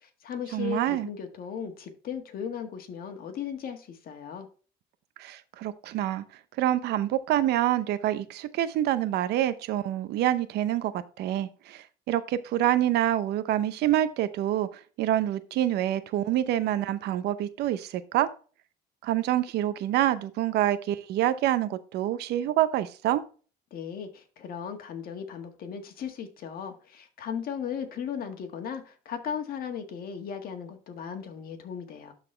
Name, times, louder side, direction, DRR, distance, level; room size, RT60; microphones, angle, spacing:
voice 1, 0.0-4.5 23.7-32.1, left 7 dB, 60° left, 1.7 m, -36 dB
voice 2, 0.5-1.1 5.2-6.2 6.6-18.3 19.0-23.2, right 12 dB, 80° right, 0.7 m, -27 dB
12.0 x 4.1 x 3.2 m
cardioid pair, 110°, 17 cm